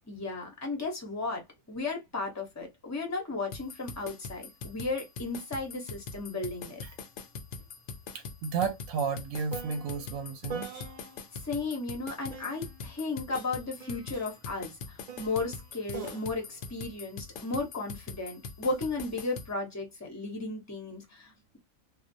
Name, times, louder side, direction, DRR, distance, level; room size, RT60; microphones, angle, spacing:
voice 1, 0.1-6.8 11.3-21.6, left 3 dB, 20° left, 0.5 m, -35 dB
sound 1, 3.5-19.5, left 5 dB, 70° left, 0.8 m, -42 dB
sound 2, 6.1-6.3 6.6-11.4 12.3-17.8 18.7-19.1, right 4 dB, 40° right, 0.6 m, -46 dB
voice 2, 8.4-10.7, right 6 dB, 75° right, 0.9 m, -32 dB
2.4 x 2.0 x 2.6 m
omnidirectional pair, 1.4 m